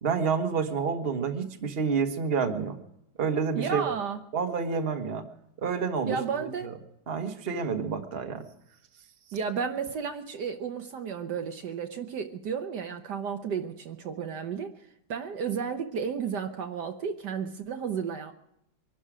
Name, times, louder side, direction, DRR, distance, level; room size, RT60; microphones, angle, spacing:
voice 1, 0.0-2.8 3.2-3.9 4.3-5.2 5.6-6.2 6.6-6.7 7.1-8.4, right 5 dB, 35° right, 6 dB, 1.4 m, -28 dB
voice 2, 3.5-4.2 6.1-6.7 9.3-18.3, right 6 dB, 65° right, 6 dB, 1.5 m, -33 dB
24.0 x 12.0 x 4.9 m, 0.82 s
omnidirectional pair, 2.0 m